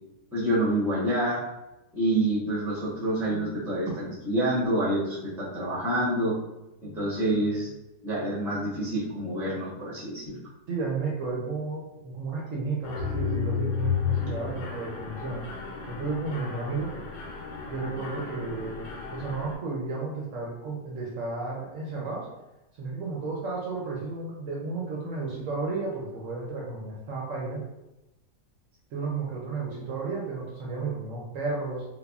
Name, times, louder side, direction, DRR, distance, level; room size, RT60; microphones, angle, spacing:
voice 1, 0.3-1.4 1.9-6.4 6.8-7.7 8.0-10.4, right 1 dB, 5° right, -8 dB, 0.4 m, -27 dB
voice 2, 10.7-15.4 15.9-16.9 17.7-22.3 22.7-27.6 28.9-31.9, right 3 dB, 65° right, -3 dB, 0.8 m, -33 dB
Mechanisms, 12.8-19.6, left 7 dB, 85° left, 1.2 m, -33 dB
3.3 x 2.1 x 2.2 m, 0.96 s
omnidirectional pair, 1.7 m